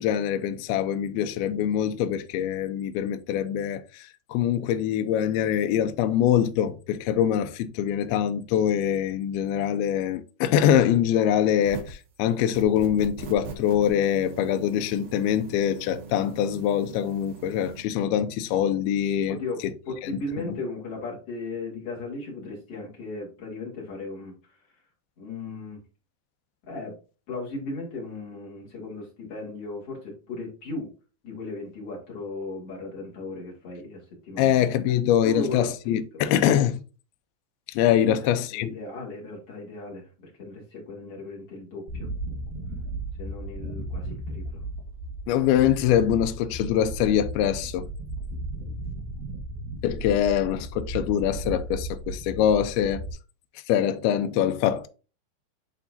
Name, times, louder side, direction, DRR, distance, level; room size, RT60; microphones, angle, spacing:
voice 1, 0.0-19.4 19.6-19.7 20.0-20.1 20.5-20.6 34.4-36.8 37.7-38.7 45.3-47.9 49.8-53.0 53.7-54.9, left 10 dB, 85° left, 2.2 m, -24 dB
sound 1, 11.6-12.1 12.5-17.8, right 4 dB, 65° right, 2.3 m, -41 dB
voice 2, 19.3-19.6 19.9-24.6 25.2-25.8 26.7-27.0 27.3-30.9 31.2-34.6 35.2-36.0 38.0-42.1 43.2-44.6, left 2 dB, 40° left, 2.7 m, -36 dB
sound 2, 41.9-53.1, right 1 dB, 80° right, 3.3 m, -35 dB
10.5 x 3.6 x 2.6 m
omnidirectional pair, 5.1 m